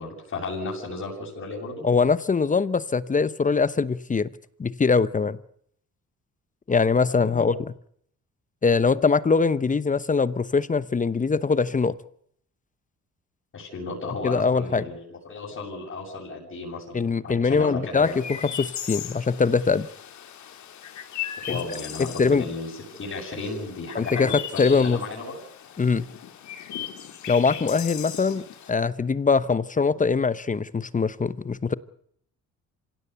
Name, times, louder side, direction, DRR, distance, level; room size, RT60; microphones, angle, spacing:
voice 1, 0.0-1.8 7.1-7.5 13.5-18.2 21.5-22.7 22.9-25.4, left 3 dB, 45° left, -6 dB, 7.8 m, -34 dB
voice 2, 1.8-4.3 4.6-5.4 6.7-7.6 8.6-11.9 14.2-14.8 16.9-18.2 18.5-19.9 21.5-21.6 22.0-22.4 23.9-25.0 25.8-26.1 27.3-31.7, left 4 dB, 25° left, 16 dB, 0.9 m, -22 dB
Chirp tweet, 18.0-28.7, left 9 dB, 70° left, 2.6 m, -38 dB
26.0 x 16.5 x 8.2 m, 0.67 s
cardioid pair, 90°, 30 cm